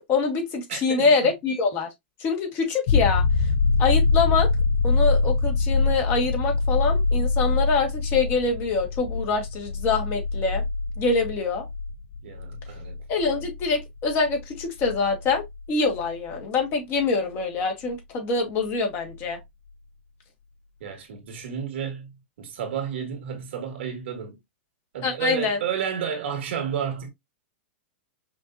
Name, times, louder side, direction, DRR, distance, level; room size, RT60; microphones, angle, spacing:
voice 1, 0.0-1.9 2.2-3.2 3.8-4.5 4.8-10.6 11.0-11.7 13.1-15.4 15.7-19.4 25.0-25.6, left 4 dB, 35° left, 1.6 m, -25 dB
voice 2, 0.7-1.3 12.2-13.0 20.8-24.4 24.9-27.1, right 8 dB, 75° right, 1.7 m, -31 dB
sound 1, 2.9-16.4 19.1-19.2, left 3 dB, 65° left, 0.4 m, -24 dB
5.4 x 2.8 x 2.5 m
hypercardioid pair, 130°, 6 cm